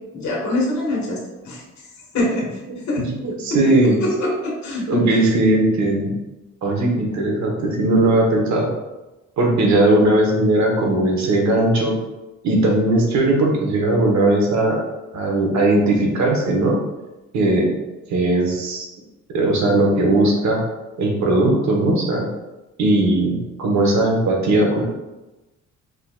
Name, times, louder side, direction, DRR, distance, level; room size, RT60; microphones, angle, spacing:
voice 1, 0.1-1.6 2.1-2.6 2.9-3.1 3.5-5.1, left 1 dB, 65° left, -3 dB, 1.3 m, -24 dB
voice 2, 2.7-4.0 4.9-6.1 6.6-8.7 9.4-11.9 12.4-14.8 15.1-16.8 17.3-17.7 18.1-18.9 19.3-20.6 21.0-22.3 22.8-24.8, right 2 dB, 65° right, 0 dB, 1.0 m, -18 dB
4.4 x 2.8 x 2.2 m, 1.1 s
cardioid pair, 90°, 30 cm